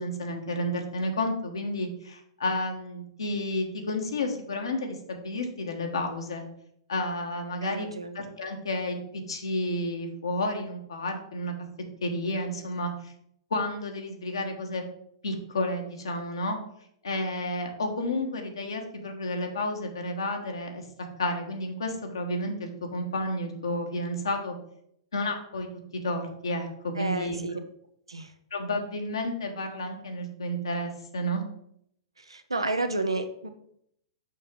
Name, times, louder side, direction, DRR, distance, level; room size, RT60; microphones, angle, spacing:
voice 1, 0.0-6.4 6.9-7.9 8.1-11.5 12.0-13.1 13.5-14.8 15.2-16.6 17.0-20.8 21.2-24.5 25.1-25.7 26.0-27.4 28.5-31.4, left 1 dB, 75° left, 3 dB, 1.4 m, -31 dB
voice 2, 7.6-8.2 27.0-27.6 28.1-28.3 32.2-33.6, right 2 dB, 90° right, 8 dB, 0.8 m, -31 dB
6.4 x 5.5 x 3.8 m, 0.71 s
figure-of-eight pair, 105°, 3 cm